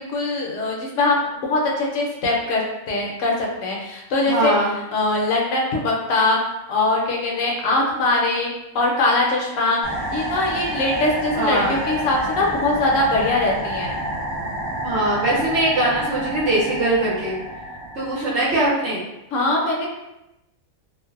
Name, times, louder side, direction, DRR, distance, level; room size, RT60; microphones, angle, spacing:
voice 1, 0.0-4.5 4.9-6.4 6.7-14.0 19.3-19.9, left 2 dB, 70° left, -2 dB, 0.9 m, -22 dB
voice 2, 4.3-4.7 11.3-11.8 14.8-17.4 18.0-19.0, right 2 dB, 60° right, -6 dB, 0.9 m, -21 dB
sound 1, 9.8-18.6, right 1 dB, 25° left, 0.7 m, -29 dB
2.5 x 2.1 x 2.4 m, 0.92 s
omnidirectional pair, 1.5 m